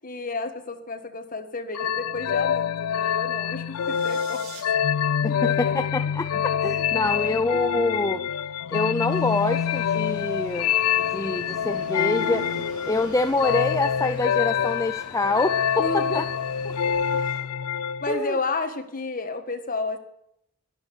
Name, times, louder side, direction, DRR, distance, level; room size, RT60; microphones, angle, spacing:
voice 1, 0.0-4.5 5.3-5.7 7.0-7.3 15.8-16.3 18.0-20.0, left 3 dB, 40° left, 6 dB, 1.5 m, -31 dB
sound 1, 1.7-18.2, left 8 dB, 80° left, 0.4 m, -26 dB
sound 2, 3.7-4.6, right 5 dB, 65° right, 4.0 m, -44 dB
voice 2, 5.2-8.3 8.7-10.7 11.1-16.2 18.1-18.4, left 3 dB, 15° left, 9 dB, 0.4 m, -26 dB
sound 3, 9.1-17.4, equal, 5° right, 6.7 m, -43 dB
11.5 x 11.0 x 6.5 m, 0.75 s
head